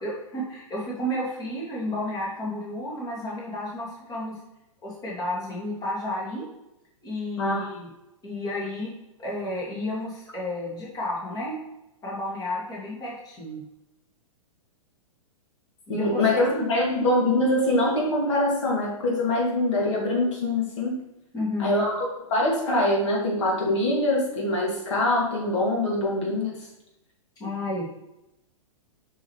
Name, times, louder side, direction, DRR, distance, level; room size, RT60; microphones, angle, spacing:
voice 1, 0.0-4.4 4.8-6.5 7.0-7.9 8.2-8.9 9.2-11.6 12.0-13.6 15.9-16.6 21.3-21.8 27.4-27.9, left 1 dB, 20° left, -4 dB, 2.4 m, -32 dB
voice 2, 15.9-21.0 21.6-26.6, left 1 dB, 60° left, -2 dB, 2.5 m, -24 dB
7.3 x 6.3 x 3.2 m, 0.90 s
figure-of-eight pair, 110°, 18 cm